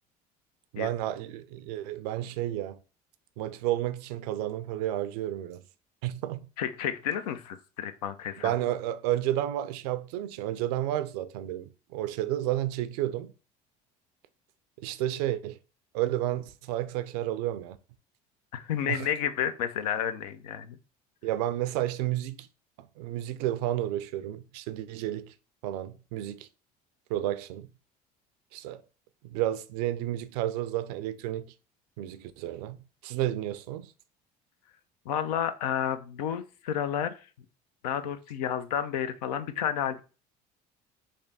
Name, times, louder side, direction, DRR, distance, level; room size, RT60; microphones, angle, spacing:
voice 1, 0.7-2.8 3.4-5.6 6.0-6.5 8.4-13.3 14.8-15.6 15.9-17.8 18.9-19.1 21.2-22.5 22.8-25.3 25.6-26.5 27.1-27.7 28.5-28.8 29.2-31.5 32.0-33.9, right 13 dB, 80° right, 0.4 m, -31 dB
voice 2, 6.6-8.5 18.5-20.8 35.1-37.2 37.8-40.0, left 9 dB, 90° left, 0.4 m, -31 dB
3.3 x 2.6 x 4.0 m
hypercardioid pair, 75°, 20 cm